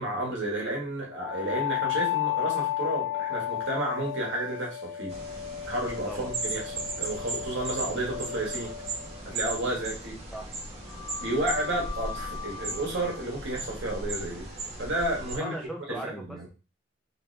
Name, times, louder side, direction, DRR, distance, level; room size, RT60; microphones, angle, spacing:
voice 1, 0.0-5.2 5.6-6.6 7.0-8.7 9.2-10.2 11.2-14.5 14.8-15.5 16.0-16.5, right 1 dB, 70° right, -2 dB, 1.4 m, -31 dB
sound 1, 1.2-10.0 10.9-15.6, left 11 dB, 75° left, 0.7 m, -35 dB
sound 2, 5.1-15.4, right 2 dB, 35° right, 0.9 m, -37 dB
voice 2, 15.4-16.5, right 1 dB, ahead, 0 dB, 0.5 m, -38 dB
3.3 x 2.9 x 3.2 m, 0.32 s
head